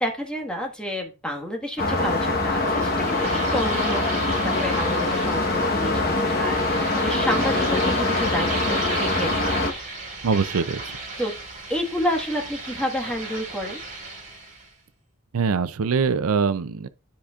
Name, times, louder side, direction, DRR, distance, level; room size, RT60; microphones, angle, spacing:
voice 1, 0.0-10.1 11.2-11.3 11.7-13.8, equal, 5° left, 1.5 m, -30 dB
sound 1, 1.8-9.7, left 2 dB, 40° left, 1.2 m, -23 dB
sound 2, 2.4-14.7, right 3 dB, 35° right, 4.4 m, -35 dB
voice 2, 10.2-11.0 15.3-16.9, right 5 dB, 80° right, 0.5 m, -23 dB
12.0 x 5.0 x 2.4 m
head